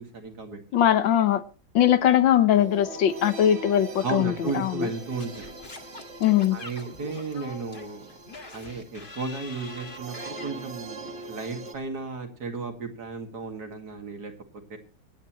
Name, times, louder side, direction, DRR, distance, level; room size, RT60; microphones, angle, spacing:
voice 1, 0.0-0.9 4.0-5.5 6.5-8.1 8.5-11.0 11.3-14.3 14.7-14.8, right 4 dB, 55° right, 2.6 m, -34 dB
voice 2, 0.7-1.4 1.7-4.9 6.2-6.6, left 10 dB, 75° left, 1.6 m, -21 dB
sound 1, 2.5-11.7, right 2 dB, 35° right, 1.9 m, -42 dB
Singing / Scratching (performance technique), 5.2-10.5, left 3 dB, 30° left, 1.7 m, -44 dB
25.0 x 9.5 x 3.0 m
omnidirectional pair, 2.1 m